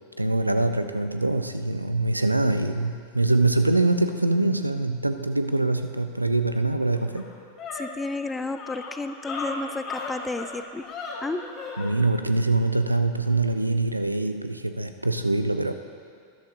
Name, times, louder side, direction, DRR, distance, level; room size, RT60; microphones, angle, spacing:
voice 1, 0.2-7.3 11.8-15.7, right 2 dB, 85° right, 9 dB, 0.5 m, -24 dB
sound 1, 6.5-6.6 6.9-11.9, left 4 dB, 30° left, 1.8 m, -36 dB
voice 2, 7.7-10.8 11.2-11.4, left 2 dB, 10° left, 10 dB, 0.4 m, -32 dB
13.0 x 11.5 x 2.7 m, 2.3 s
figure-of-eight pair, 90°, 0 cm